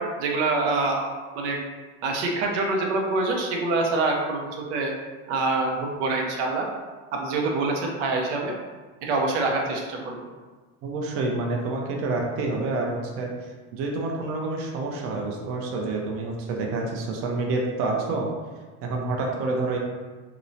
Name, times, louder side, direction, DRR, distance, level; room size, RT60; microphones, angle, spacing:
voice 1, 0.0-1.6 2.0-4.9 5.3-6.7 7.1-8.5 9.0-10.3, right 3 dB, 85° right, 1 dB, 0.6 m, -25 dB
voice 2, 10.8-18.3 18.8-19.8, right 3 dB, 40° right, 0 dB, 0.5 m, -28 dB
2.9 x 2.0 x 2.5 m, 1.3 s
supercardioid pair, 135°, 35 cm